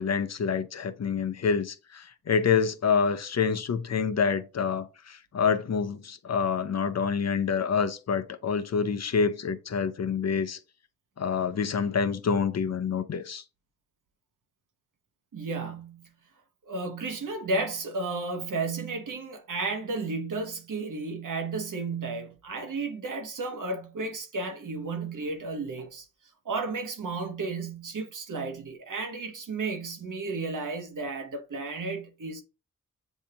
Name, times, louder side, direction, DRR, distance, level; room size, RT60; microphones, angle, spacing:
voice 1, 0.0-10.6 11.2-13.4, left 6 dB, 50° left, 0.6 m, -27 dB
voice 2, 15.3-16.1 16.7-26.0 26.4-32.4, right 3 dB, 70° right, 1.1 m, -33 dB
7.1 x 2.7 x 2.8 m
cardioid pair, 40°, 33 cm